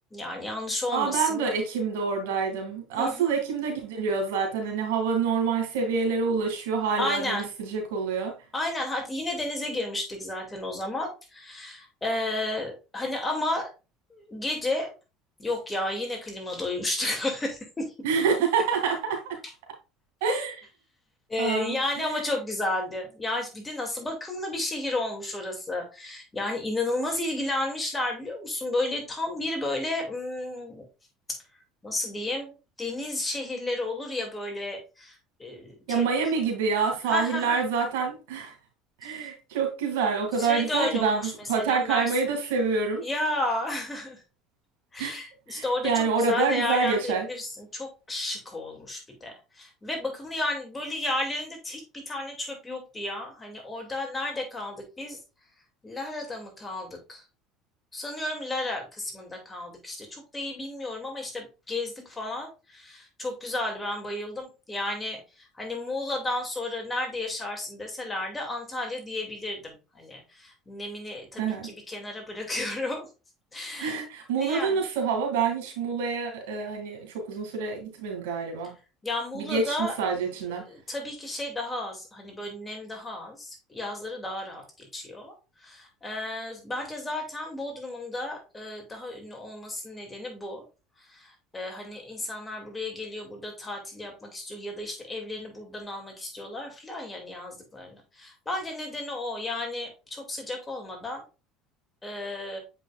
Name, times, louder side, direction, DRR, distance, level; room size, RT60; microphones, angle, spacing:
voice 1, 0.1-1.4 2.9-3.4 7.0-7.5 8.5-13.7 14.1-14.9 15.4-17.9 21.3-30.9 31.3-31.4 31.8-36.1 37.1-37.6 39.0-39.3 40.4-42.1 43.0-44.2 44.9-55.2 55.8-57.2 57.9-73.1 73.5-73.9 74.4-74.8 79.0-79.9 80.6-85.3 85.6-90.7 91.1-101.2 102.0-102.6, left 2 dB, 20° left, 2.4 m, -32 dB
voice 2, 0.9-8.3 18.0-19.4 20.2-20.6 21.4-22.2 35.9-38.5 39.0-43.0 45.0-45.2 45.5-47.3 71.4-71.7 73.7-78.7 79.3-80.6, right 5 dB, 85° right, 2.3 m, -27 dB
7.4 x 5.4 x 2.4 m
supercardioid pair, 95°, 0 cm